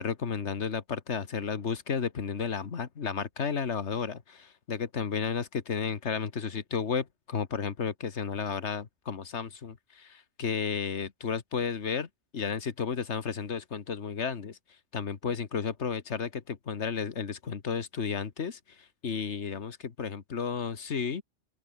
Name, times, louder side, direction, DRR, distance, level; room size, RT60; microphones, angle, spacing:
voice 1, 0.0-12.1 12.3-14.6 14.9-21.2, left 6 dB, 80° left, 1.8 m, -33 dB
open air
omnidirectional pair, 1.1 m